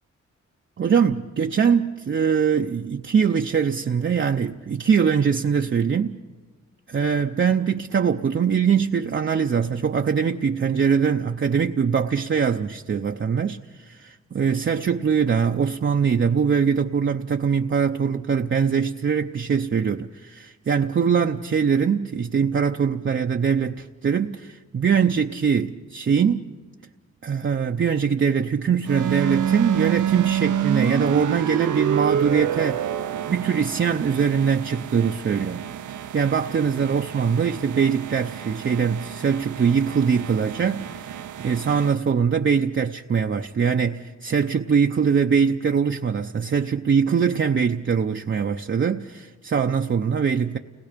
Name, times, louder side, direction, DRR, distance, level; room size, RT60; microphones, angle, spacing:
voice 1, 0.8-6.2 6.9-13.6 13.9-26.5 27.2-32.9 33.3-35.6 36.1-50.6, right 6 dB, 40° right, 0.6 m, -22 dB
sound 1, 28.8-41.9, right 10 dB, 85° right, 0.7 m, -28 dB
30.0 x 19.5 x 5.1 m
wide cardioid pair, 95°, 30 cm